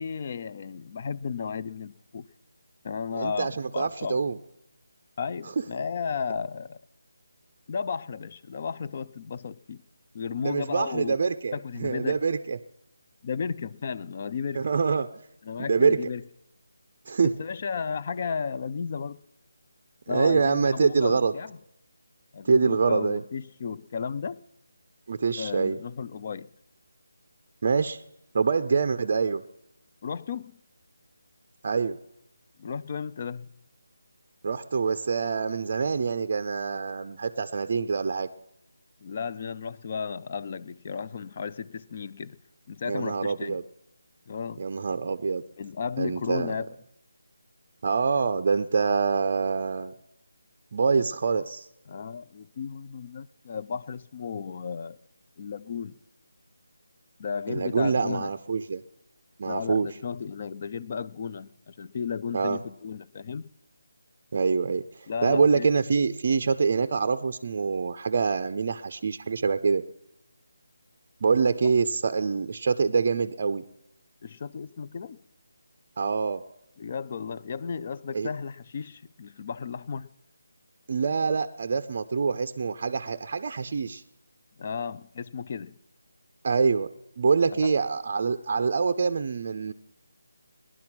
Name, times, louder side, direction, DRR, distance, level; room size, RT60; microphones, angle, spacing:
voice 1, 0.0-2.2 2.8-4.2 5.2-6.8 7.7-9.8 10.1-11.2 11.5-12.2 13.2-14.7 15.4-16.2 17.2-19.2 20.1-21.6 22.3-24.4 25.4-26.5 30.0-30.6 32.6-33.5 39.0-42.4 42.7-43.6 44.3-44.6 45.6-46.7 51.9-55.0 55.4-56.0 57.2-58.3 59.5-63.5 65.1-65.7 71.6-71.7 74.2-75.2 76.8-80.1 84.6-85.7 87.5-87.7, left 6 dB, 30° left, 0.5 m, -34 dB
voice 2, 3.1-4.4 10.4-12.6 14.5-15.1 15.7-16.0 17.1-17.3 20.1-21.3 22.4-23.2 25.1-25.8 27.6-28.0 28.3-29.4 31.6-32.0 34.4-38.3 42.8-43.6 44.6-45.4 46.0-46.5 47.8-49.9 50.7-51.7 57.5-58.8 59.4-59.9 62.3-62.6 64.3-69.8 71.2-73.6 76.0-76.4 78.1-78.3 80.9-84.0 86.4-86.9 87.2-89.7, right 5 dB, 40° right, 0.5 m, -25 dB
18.0 x 11.0 x 5.9 m
figure-of-eight pair, 170°, 0 cm